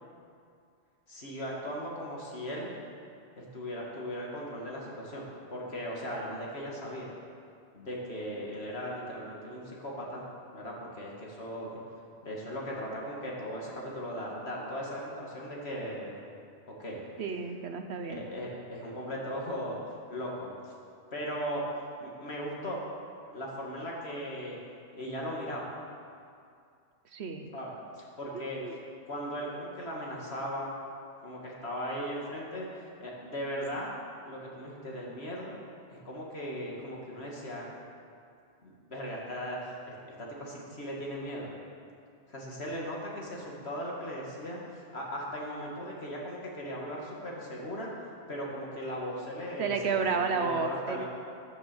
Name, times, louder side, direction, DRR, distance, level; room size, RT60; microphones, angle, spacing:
voice 1, 1.1-2.8 3.4-7.1 7.7-10.2 10.5-11.7 12.2-16.2 16.8-17.0 18.1-20.7 21.1-21.6 22.0-22.8 23.3-24.6 24.9-25.7 27.5-27.7 28.0-28.8 29.1-30.8 31.2-32.7 33.0-33.9 34.2-35.5 35.9-37.7 38.6-41.5 42.3-47.9 48.3-51.0, equal, 60° left, -3 dB, 2.4 m, -38 dB
voice 2, 17.2-18.3 27.1-27.5 28.3-28.8 49.6-51.0, right 5 dB, 65° right, 6 dB, 1.1 m, -31 dB
11.0 x 9.0 x 6.9 m, 2.4 s
omnidirectional pair, 1.2 m